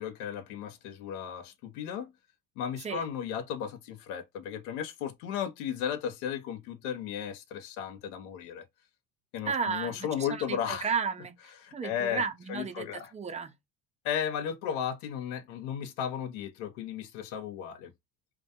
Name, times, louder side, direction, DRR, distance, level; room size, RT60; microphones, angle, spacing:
voice 1, 0.0-2.1 2.6-8.7 9.3-10.9 11.6-12.2 12.5-13.1 14.0-17.9, left 9 dB, 80° left, 0.6 m, -35 dB
voice 2, 9.5-13.5, right 6 dB, 20° right, 0.4 m, -34 dB
2.2 x 2.2 x 2.7 m
supercardioid pair, 80°, 35 cm